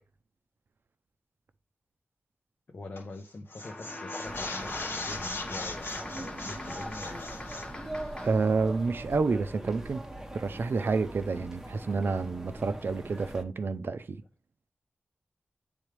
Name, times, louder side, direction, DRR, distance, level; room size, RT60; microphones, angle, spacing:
voice 1, 2.7-7.4, left 2 dB, 60° left, 0.7 m, -44 dB
sound 1, 3.0-3.2 3.5-7.7, left 3 dB, 85° left, 1.4 m, -39 dB
sound 2, 3.6-8.6, left 1 dB, 25° left, 0.9 m, -42 dB
sound 3, 4.2-13.4, right 1 dB, 10° right, 0.8 m, -42 dB
voice 2, 8.2-10.0 10.3-14.2, right 4 dB, 65° right, 0.5 m, -29 dB
8.8 x 3.5 x 3.3 m
wide cardioid pair, 105°, 4 cm